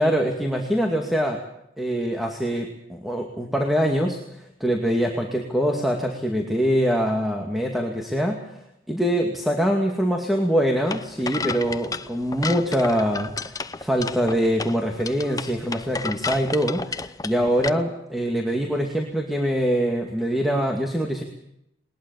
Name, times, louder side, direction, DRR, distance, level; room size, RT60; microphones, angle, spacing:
voice 1, 0.0-1.4 1.8-21.2, equal, ahead, 2 dB, 2.3 m, -24 dB
sound 1, 10.9-17.7, left 4 dB, 20° left, 0.8 m, -32 dB
21.0 x 20.0 x 7.2 m, 0.79 s
head